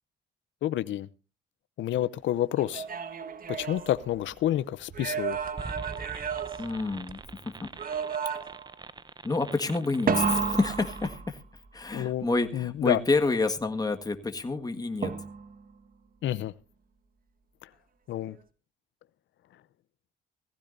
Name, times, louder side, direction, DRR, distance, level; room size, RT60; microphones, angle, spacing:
voice 1, 0.6-1.1 1.8-2.8 3.5-5.4 11.9-12.3 12.5-13.0 16.2-16.5 17.6-17.7 18.1-18.4, left 12 dB, 75° left, 0.7 m, -29 dB
sound 1, 2.6-4.5 4.9-7.3 7.8-8.7 10.1-11.7 15.0-15.7, right 6 dB, 45° right, 1.5 m, -32 dB
sound 2, 5.6-11.1, right 3 dB, 20° right, 0.8 m, -44 dB
voice 2, 6.6-7.7 9.2-11.4 11.7-15.1, left 3 dB, 20° left, 1.6 m, -29 dB
18.0 x 15.5 x 2.6 m
cardioid pair, 90°, 20 cm